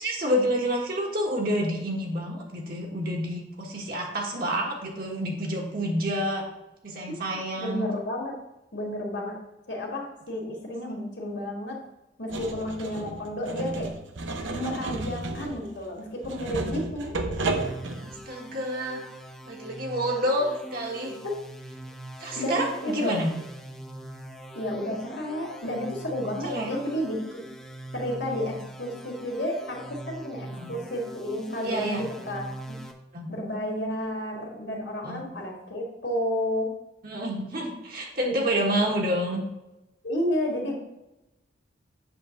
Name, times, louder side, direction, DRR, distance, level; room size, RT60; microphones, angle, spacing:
voice 1, 0.0-6.4 6.8-7.9 18.0-19.0 19.5-21.2 22.2-23.3 26.4-26.7 30.5-30.7 31.6-32.1 33.1-33.3 35.0-35.2 37.0-39.4, equal, 50° right, -1 dB, 1.4 m, -28 dB
voice 2, 7.6-8.4 8.7-9.3 9.7-11.8 12.2-13.9 14.5-17.1 22.4-23.2 24.5-27.5 27.9-32.8 33.3-36.7 38.3-38.4 40.0-40.8, left 1 dB, 65° left, 0 dB, 2.0 m, -31 dB
sound 1, 12.3-18.2, right 2 dB, 80° right, 0.9 m, -32 dB
sound 2, 17.6-32.9, right 1 dB, 5° left, 0.6 m, -42 dB
7.8 x 3.4 x 6.4 m, 0.93 s
head